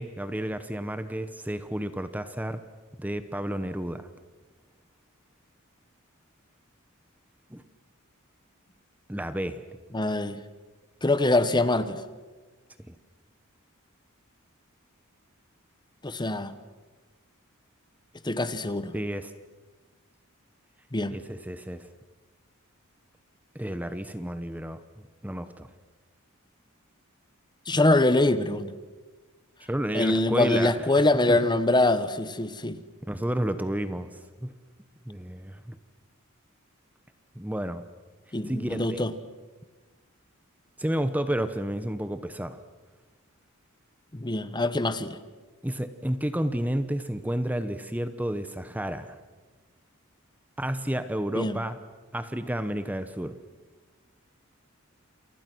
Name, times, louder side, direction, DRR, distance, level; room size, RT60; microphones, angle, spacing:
voice 1, 0.0-2.6 3.0-4.1 7.5-7.6 9.1-9.6 12.8-12.9 18.9-19.3 21.1-21.9 23.5-24.8 25.2-25.7 29.6-31.4 33.0-34.6 35.1-35.8 37.3-37.8 38.5-39.0 40.8-42.6 45.6-49.2 50.6-51.8 52.1-53.4, right 1 dB, 5° right, 10 dB, 0.9 m, -31 dB
voice 2, 9.9-10.4 11.0-12.0 16.0-16.5 18.2-18.9 20.9-21.1 27.7-28.7 29.9-32.8 38.3-39.1 44.1-45.2 51.3-51.6, left 2 dB, 20° left, 12 dB, 1.2 m, -24 dB
29.0 x 28.5 x 6.3 m, 1.3 s
head